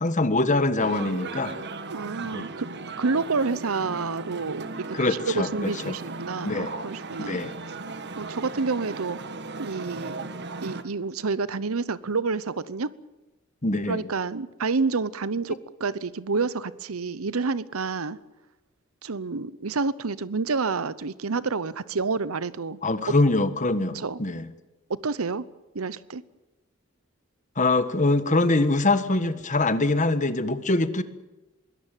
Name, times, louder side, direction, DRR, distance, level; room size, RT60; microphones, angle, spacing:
voice 1, 0.0-1.6 2.3-2.5 4.9-6.0 6.4-6.7 7.2-7.5 13.6-14.0 22.8-24.5 27.6-31.0, left 2 dB, 35° left, 12 dB, 1.5 m, -24 dB
sound 1, 0.8-10.8, right 3 dB, 55° right, 1.6 m, -37 dB
voice 2, 1.9-2.7 3.0-4.7 5.0-7.4 8.2-9.2 9.6-10.2 10.6-12.9 13.9-18.2 19.0-22.8 23.9-24.2 24.9-25.4 25.7-26.2, right 4 dB, 85° right, 18 dB, 0.9 m, -28 dB
22.0 x 18.0 x 9.2 m, 1.1 s
head